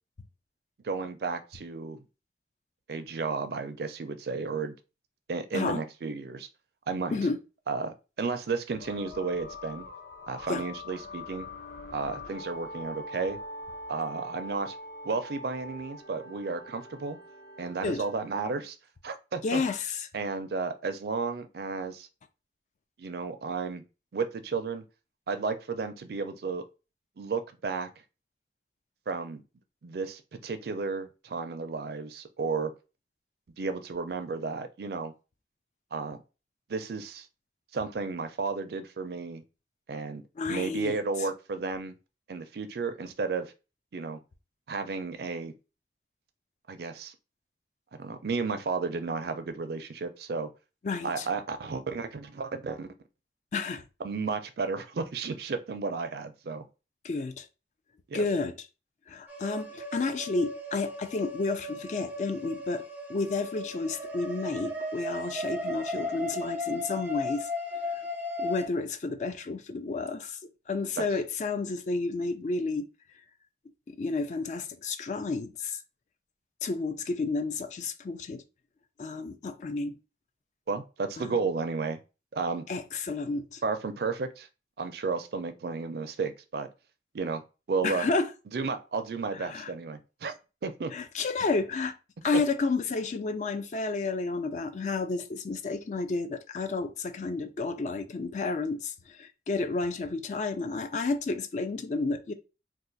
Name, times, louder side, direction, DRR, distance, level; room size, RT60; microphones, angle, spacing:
voice 1, 0.8-2.0 2.9-4.7 5.3-6.5 6.9-7.2 7.7-9.9 10.3-11.5 11.9-13.4 13.9-14.8 15.0-17.2 17.6-18.8 19.0-19.6 20.1-22.1 23.0-23.8 24.1-24.8 25.3-26.6 27.2-27.9 29.1-29.4 29.8-32.7 33.6-35.1 35.9-36.2 36.7-37.3 37.7-39.4 39.9-40.2 40.5-41.9 42.3-43.5 43.9-44.2 44.7-45.5 46.7-47.1 48.0-50.5 51.0-52.9 54.0-56.6 58.1-58.3 80.7-82.0 82.3-82.6 83.6-84.5 84.8-86.7 87.1-87.4 87.7-88.1 88.5-90.3 90.6-90.9, right 4 dB, 60° right, 0.4 m, -33 dB
sound 1, 8.8-18.5, left 1 dB, 60° left, 0.9 m, -43 dB
voice 2, 19.4-20.1 40.4-41.0 50.8-51.3 53.5-53.8 57.0-57.5 58.1-58.5 59.1-62.8 63.1-67.5 68.4-70.4 70.7-72.9 73.9-75.8 76.6-78.4 79.0-80.0 81.2-81.5 82.7-83.6 87.8-88.3 89.3-89.7 90.9-92.0 92.2-102.3, left 3 dB, 40° left, 0.3 m, -31 dB
sound 2, 59.3-68.7, left 1 dB, 10° right, 0.5 m, -36 dB
2.4 x 2.4 x 3.8 m
head